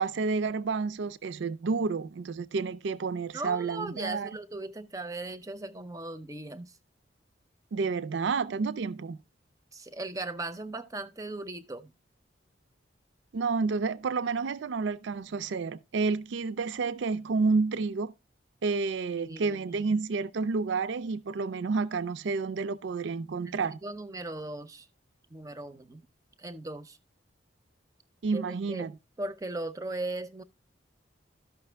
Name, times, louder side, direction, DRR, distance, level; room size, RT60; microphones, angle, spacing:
voice 1, 0.0-4.3 7.7-9.2 13.3-18.1 18.6-23.8 28.2-28.9, right 4 dB, 70° right, 0.4 m, -30 dB
voice 2, 3.3-6.8 9.7-11.9 19.2-19.8 23.4-24.9 25.3-26.0 26.4-27.0 28.3-28.9 29.2-30.4, right 2 dB, 15° right, 0.5 m, -38 dB
12.5 x 5.6 x 3.3 m
head